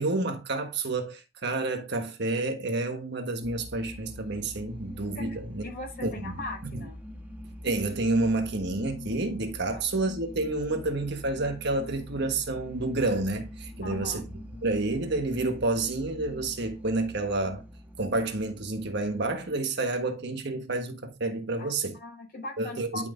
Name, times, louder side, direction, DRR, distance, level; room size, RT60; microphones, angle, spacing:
voice 1, 0.0-5.6 6.0-6.3 6.7-6.8 7.6-14.2 14.6-17.6 18.0-22.0 22.6-23.1, right 2 dB, 55° right, 1.4 m, -29 dB
sound 1, 3.4-19.5, left 1 dB, 10° right, 1.4 m, -44 dB
voice 2, 5.6-7.0 9.7-9.8 13.8-14.2 21.6-23.1, left 2 dB, 50° left, 4.7 m, -40 dB
11.0 x 5.8 x 2.6 m
head